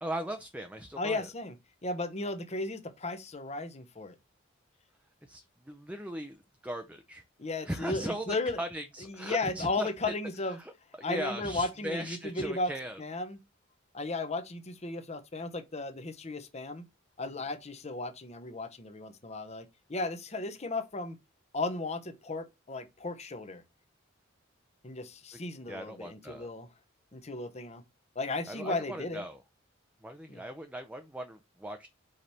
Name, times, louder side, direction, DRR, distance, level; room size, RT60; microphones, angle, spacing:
voice 1, 0.0-1.3 5.2-6.4 6.6-7.2 7.6-10.1 10.6-10.7 11.0-13.0 25.3-25.4 25.7-26.5 28.5-29.4 30.0-31.9, right 1 dB, 5° right, 0.5 m, -38 dB
voice 2, 1.0-1.5 1.8-4.1 7.4-8.6 9.1-10.6 11.0-12.7 13.0-13.4 13.9-16.9 17.2-21.2 21.5-23.6 24.8-26.7 27.1-27.8 28.1-29.2 30.3-30.4, left 2 dB, 35° left, 0.9 m, -35 dB
5.1 x 4.2 x 4.4 m
head